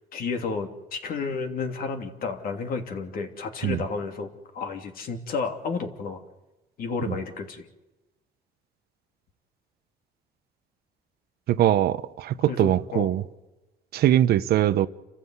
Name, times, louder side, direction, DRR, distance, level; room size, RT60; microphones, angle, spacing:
voice 1, 0.1-4.3 4.5-6.2 6.8-7.7 12.5-13.1, left 4 dB, 60° left, 3.1 m, -31 dB
voice 2, 11.5-13.2 13.9-14.9, right 12 dB, 70° right, 0.9 m, -22 dB
29.5 x 14.5 x 8.2 m
cardioid pair, 110°, 17 cm